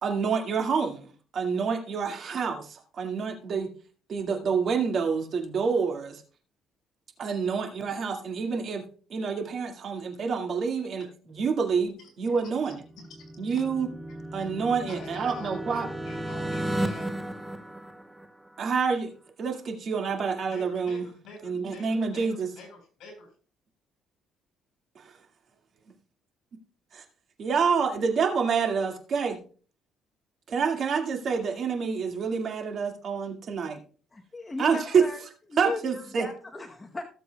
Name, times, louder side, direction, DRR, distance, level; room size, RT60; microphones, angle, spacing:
voice 1, 0.0-3.7 4.1-6.2 7.2-8.8 9.1-12.8 13.4-13.9 14.3-15.9 18.6-21.1 21.4-22.5 25.0-25.2 26.9-27.0 27.4-29.4 30.5-33.8 34.6-35.0 35.6-36.3, right 5 dB, 50° right, 3 dB, 1.9 m, -28 dB
sound 1, 12.7-18.6, right 1 dB, 10° right, 0.8 m, -34 dB
voice 2, 12.9-13.3 13.6-13.7 14.9-17.2 20.5-23.3, left 3 dB, 65° left, 3 dB, 5.3 m, -48 dB
voice 3, 34.1-35.2 35.5-37.0, left 3 dB, 20° left, 3 dB, 0.9 m, -36 dB
17.5 x 7.3 x 2.3 m, 0.40 s
cardioid pair, 120°, 0 cm